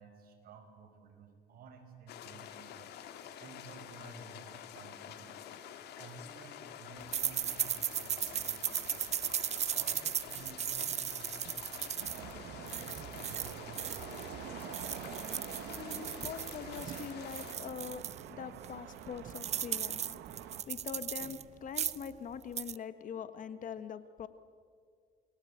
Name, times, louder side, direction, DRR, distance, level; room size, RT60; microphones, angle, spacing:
voice 1, 0.0-2.9 3.4-5.3 5.8-13.1, right 4 dB, 60° right, 4 dB, 5.9 m, -54 dB
sound 1, 2.1-17.5, left 9 dB, 75° left, 2.2 m, -48 dB
sound 2, 7.1-14.3 14.6-18.2 18.6-18.7 19.0-21.4 21.7-22.1 22.4-22.8, right 9 dB, 40° right, 0.6 m, -37 dB
sound 3, 12.0-20.6, right 10 dB, 80° right, 1.7 m, -46 dB
voice 2, 15.6-20.2 20.7-24.3, left 7 dB, 50° left, 11 dB, 1.6 m, -43 dB
29.5 x 22.0 x 8.9 m, 2.2 s
cardioid pair, 110°, 17 cm